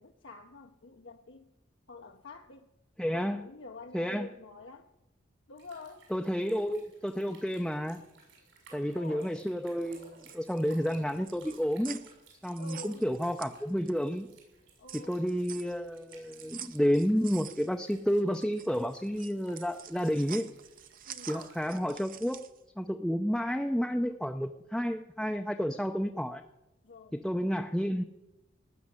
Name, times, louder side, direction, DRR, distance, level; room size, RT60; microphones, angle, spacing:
voice 1, 0.0-1.5 1.9-2.7 3.1-4.9 5.5-6.1 8.9-9.3 12.6-13.1 14.8-15.2 21.0-21.4 26.8-27.2, left 3 dB, 70° left, 0.8 m, -48 dB
voice 2, 3.0-3.4 3.9-4.3 6.1-8.0 8.7-12.0 12.4-14.3 14.9-20.5 21.3-22.5 22.8-26.4 27.1-28.0, equal, ahead, 0.5 m, -30 dB
sound 1, 5.5-21.7, right 3 dB, 75° right, 6.8 m, -57 dB
sound 2, 10.2-14.1 14.5-22.6, right 10 dB, 45° right, 0.7 m, -47 dB
19.0 x 6.4 x 9.8 m
head